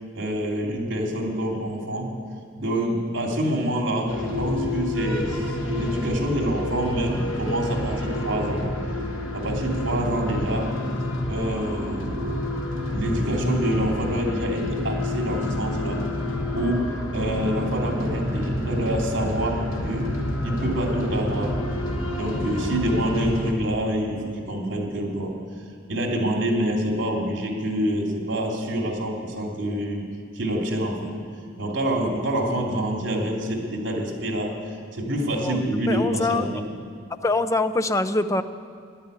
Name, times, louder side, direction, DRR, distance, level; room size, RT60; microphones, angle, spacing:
voice 1, 0.1-2.2 2.6-8.7 9.3-10.8 11.3-12.1 12.9-16.0 16.5-21.6 22.2-25.3 25.9-30.0 30.3-31.1 31.6-34.6 34.9-36.6, right 1 dB, 65° right, 0 dB, 2.9 m, -26 dB
sound 1, 4.1-23.5, left 1 dB, 85° left, 1.6 m, -28 dB
voice 2, 35.9-36.4 37.2-38.4, left 2 dB, 15° left, 10 dB, 0.5 m, -23 dB
12.0 x 11.0 x 9.5 m, 2.2 s
head